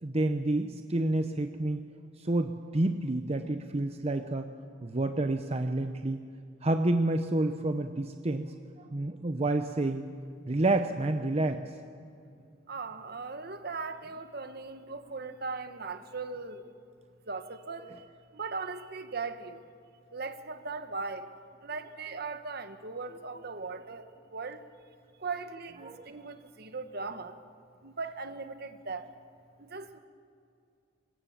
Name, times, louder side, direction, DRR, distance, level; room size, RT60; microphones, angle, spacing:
voice 1, 0.0-1.8 2.2-4.5 4.8-6.2 6.6-10.1 10.5-11.6 25.8-26.2, right 2 dB, 35° right, 7 dB, 0.8 m, -29 dB
voice 2, 12.7-16.7 17.3-18.0 18.3-19.6 20.1-21.3 21.6-24.6 25.2-27.4 27.8-29.1 29.6-30.0, right 4 dB, 55° right, 9 dB, 1.4 m, -39 dB
25.0 x 22.0 x 7.3 m, 2.4 s
head